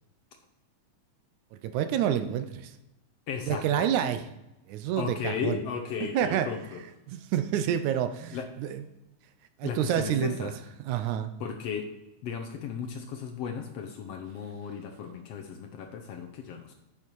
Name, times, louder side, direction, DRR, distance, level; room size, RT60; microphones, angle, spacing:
voice 1, 1.5-2.7 3.5-4.3 4.7-5.6 6.0-6.5 7.1-8.8 9.6-10.5 10.9-11.3, right 10 dB, 80° right, 10 dB, 2.0 m, -28 dB
voice 2, 3.3-3.9 5.0-6.8 8.3-8.5 9.6-10.6 11.4-11.9 12.2-16.7, left 6 dB, 70° left, 5 dB, 1.6 m, -35 dB
9.9 x 7.2 x 4.7 m, 0.96 s
omnidirectional pair, 3.5 m